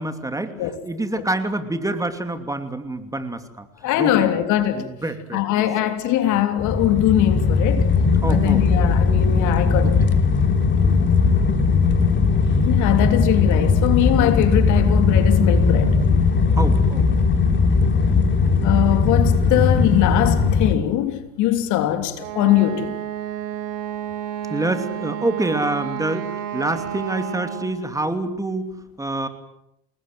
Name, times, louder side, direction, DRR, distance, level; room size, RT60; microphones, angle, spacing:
voice 1, 0.0-3.7 3.9-4.3 4.7-5.7 6.3-6.4 8.2-8.6 9.8-10.1 14.3-14.4 16.6-17.1 24.5-29.3, right 2 dB, 10° right, 2.8 m, -27 dB
voice 2, 3.8-4.9 5.3-7.8 8.3-10.0 12.6-16.0 18.6-23.0, left 13 dB, 60° left, 3.2 m, -21 dB
sound 1, 6.6-20.8, left 4 dB, 35° left, 3.4 m, -18 dB
Wind instrument woodwind instrument, 22.1-27.8, right 10 dB, 60° right, 4.3 m, -31 dB
28.5 x 20.0 x 7.9 m
hypercardioid pair, 90°, 34 cm